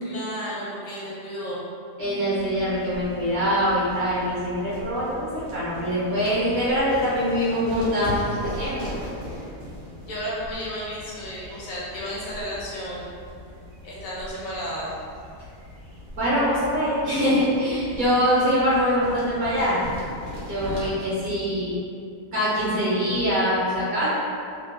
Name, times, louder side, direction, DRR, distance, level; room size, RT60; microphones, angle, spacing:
voice 1, 0.0-1.6 10.1-13.1 13.8-14.9 20.6-20.9, equal, 65° left, -7 dB, 1.0 m, -33 dB
voice 2, 2.0-8.9 16.2-19.8 20.5-21.8 22.3-24.1, equal, 70° right, -10 dB, 1.0 m, -23 dB
sound 1, 2.4-20.9, left 1 dB, 90° right, 1.3 m, -39 dB
2.9 x 2.0 x 2.3 m, 2.4 s
omnidirectional pair, 1.6 m